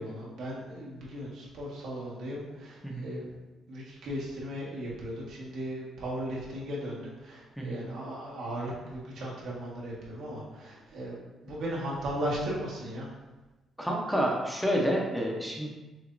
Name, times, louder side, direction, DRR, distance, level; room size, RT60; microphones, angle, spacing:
voice 1, 0.0-3.3 3.7-11.2 11.4-13.1, equal, 80° right, -5 dB, 1.4 m, -37 dB
voice 2, 13.8-15.7, equal, ahead, -2 dB, 0.8 m, -29 dB
5.9 x 2.8 x 2.6 m, 1.1 s
cardioid pair, 90°, 0 cm